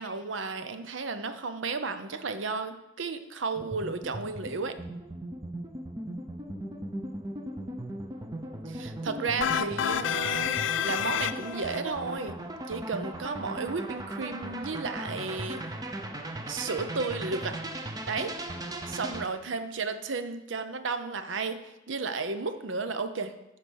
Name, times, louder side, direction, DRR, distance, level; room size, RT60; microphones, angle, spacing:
voice 1, 0.0-4.8 8.7-12.4 12.7-15.6 16.5-17.6 18.1-18.3 18.8-21.6 21.9-23.3, right 4 dB, 70° right, 9 dB, 0.7 m, -33 dB
sound 1, 3.5-19.3, right 1 dB, 20° right, 0.7 m, -38 dB
sound 2, 9.4-11.8, left 9 dB, 65° left, 0.3 m, -29 dB
10.5 x 4.5 x 6.4 m, 0.94 s
head